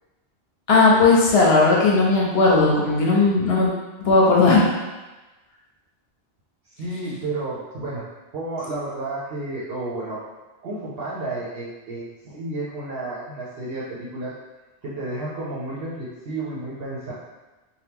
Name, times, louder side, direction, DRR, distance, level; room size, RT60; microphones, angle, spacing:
voice 1, 0.7-3.7 4.0-4.7, left 3 dB, 70° left, -3 dB, 0.9 m, -16 dB
voice 2, 6.7-8.0 8.3-10.2 10.6-14.3 14.8-17.1, right 2 dB, 65° right, -7 dB, 0.8 m, -31 dB
2.9 x 2.3 x 3.4 m, 1.1 s
omnidirectional pair, 1.1 m